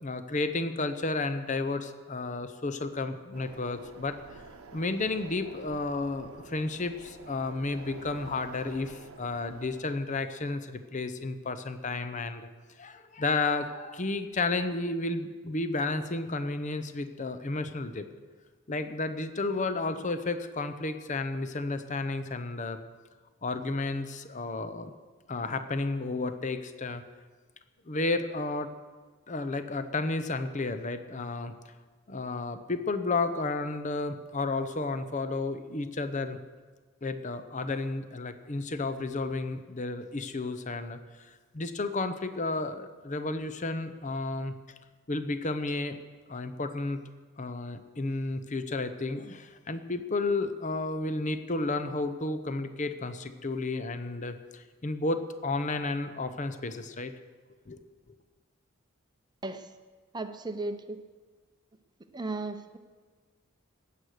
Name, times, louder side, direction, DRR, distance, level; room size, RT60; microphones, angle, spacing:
voice 1, 0.0-4.4 4.7-12.5 12.8-18.1 18.7-22.8 23.4-24.9 25.3-27.0 27.9-28.7 29.3-31.7 32.1-36.4 37.0-44.5 45.1-46.0 46.3-47.0 47.4-57.1 57.7-57.8, left 3 dB, 35° left, 10 dB, 0.7 m, -32 dB
sound 1, 3.3-9.8, right 3 dB, 85° right, 0.9 m, -48 dB
voice 2, 60.1-61.0 62.1-62.8, right 2 dB, 20° right, 8 dB, 0.7 m, -35 dB
15.0 x 9.3 x 6.6 m, 1.4 s
head